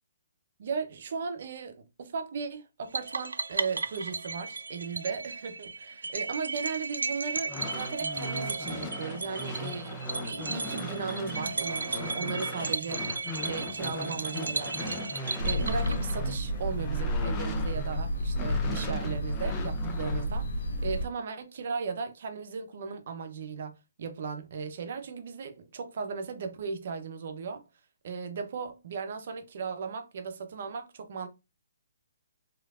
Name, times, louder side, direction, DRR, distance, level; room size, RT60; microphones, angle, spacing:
voice 1, 0.6-13.2 13.4-15.0 15.4-20.5 20.8-27.6 28.0-31.3, right 5 dB, 55° right, 0.7 m, -36 dB
sound 1, 2.9-16.4, right 4 dB, 85° right, 0.3 m, -35 dB
sound 2, 7.4-18.0 18.3-20.3, left 2 dB, 20° left, 0.6 m, -38 dB
sound 3, 15.4-21.1, equal, 65° left, 0.9 m, -31 dB
3.1 x 2.9 x 2.4 m
hypercardioid pair, 140°, 0 cm